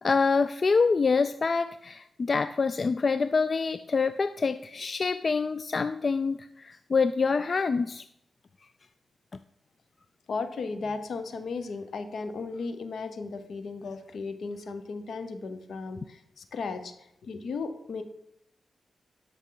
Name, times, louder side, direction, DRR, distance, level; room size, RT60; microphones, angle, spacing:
voice 1, 0.0-8.0, left 4 dB, 50° left, 11 dB, 0.3 m, -26 dB
voice 2, 10.3-16.9 17.2-18.0, left 4 dB, 75° left, 9 dB, 0.9 m, -35 dB
12.0 x 5.4 x 3.9 m, 0.80 s
cardioid pair, 60°, 0 cm